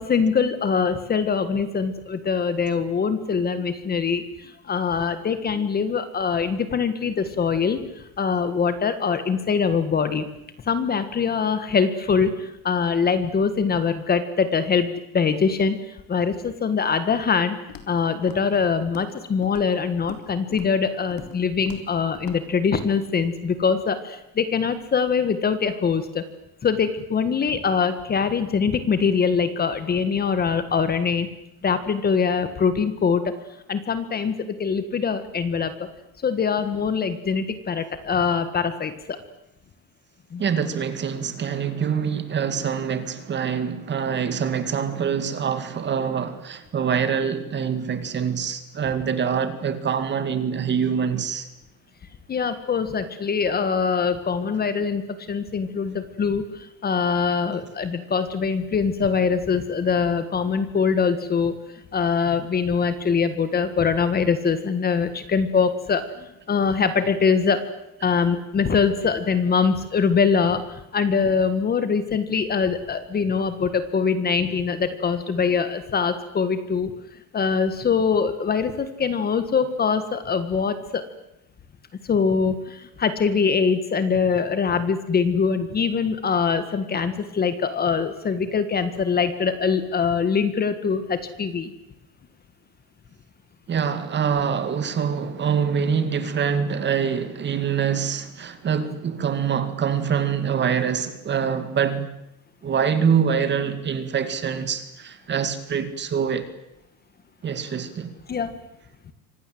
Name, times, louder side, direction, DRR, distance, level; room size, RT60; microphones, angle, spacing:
voice 1, 0.0-7.8 8.2-10.2 10.7-15.8 16.1-17.6 17.9-26.2 26.6-31.3 31.6-33.3 33.7-35.7 36.2-39.2 40.3-40.4 52.3-61.5 61.9-67.6 68.0-76.9 77.3-81.0 82.1-91.7 108.3-108.6, left 5 dB, 20° left, 1.7 m, -23 dB
Walk footsteps, 17.7-18.0 18.3-18.6 18.8-19.2 19.4-20.3 20.5-20.8 21.1-21.4 21.7-21.9 22.1-22.4 22.7-22.9, left 8 dB, 50° left, 3.9 m, -41 dB
voice 2, 40.4-51.5 93.7-102.1 102.6-106.5 107.4-108.1, right 7 dB, 25° right, 2.2 m, -25 dB
29.0 x 25.5 x 7.9 m
cardioid pair, 170°, 43 cm